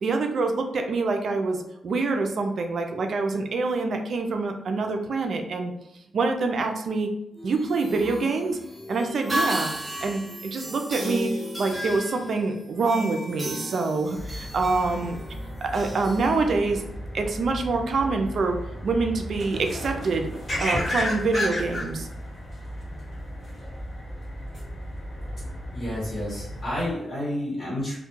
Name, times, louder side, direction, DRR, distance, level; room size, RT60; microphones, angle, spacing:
voice 1, 0.0-5.7 6.1-7.1 7.4-8.6 8.9-9.7 10.0-15.2 15.6-16.8 17.1-20.3 20.6-22.1, right 3 dB, 60° right, 4 dB, 0.4 m, -26 dB
sound 1, 7.4-16.9, equal, 10° right, 0.5 m, -34 dB
sound 2, 14.1-26.9, left 1 dB, 25° left, 1.2 m, -34 dB
voice 2, 25.7-28.0, left 1 dB, 40° left, -8 dB, 1.1 m, -30 dB
2.2 x 2.1 x 3.0 m, 0.85 s
cardioid pair, 95°, 0 cm